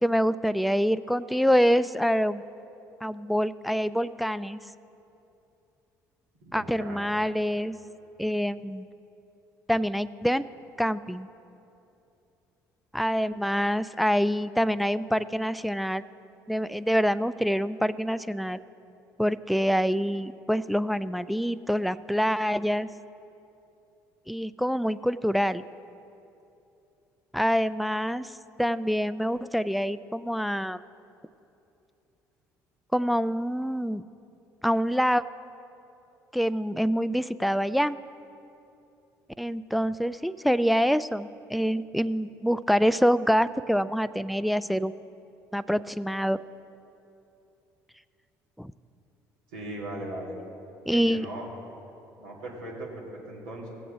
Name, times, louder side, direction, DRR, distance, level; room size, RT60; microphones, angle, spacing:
voice 1, 0.0-2.4 3.0-4.6 6.5-7.8 8.2-8.9 9.7-10.4 10.8-11.3 12.9-16.0 16.5-18.6 19.2-22.9 24.3-25.6 27.3-28.3 28.6-30.8 32.9-34.0 34.6-35.2 36.3-38.0 39.4-45.0 45.5-46.4 48.6-48.7 50.9-51.3, equal, ahead, 15 dB, 0.3 m, -26 dB
voice 2, 6.4-7.1 49.5-50.3 50.9-51.5 52.2-53.7, right 1 dB, 85° right, -4 dB, 2.4 m, -38 dB
17.0 x 7.7 x 4.0 m, 2.8 s
hypercardioid pair, 60°, 9 cm